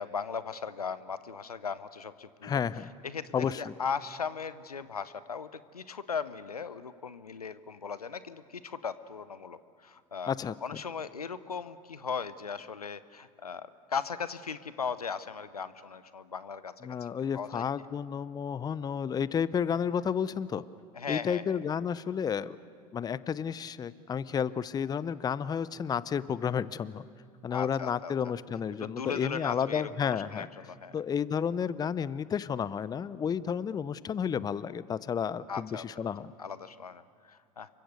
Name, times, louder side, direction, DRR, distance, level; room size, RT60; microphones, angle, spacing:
voice 1, 0.0-2.6 3.0-10.3 10.6-17.1 17.3-17.6 20.9-21.6 27.5-28.3 28.8-31.0 35.5-35.8 36.4-37.7, left 6 dB, 85° left, 15 dB, 0.8 m, -38 dB
voice 2, 2.4-2.9 3.3-3.7 10.3-10.5 16.8-20.6 21.1-22.6 22.9-27.0 27.4-30.5 30.9-36.3, left 7 dB, 20° left, 18 dB, 0.6 m, -31 dB
28.0 x 24.0 x 6.7 m, 2.1 s
figure-of-eight pair, 80°, 19 cm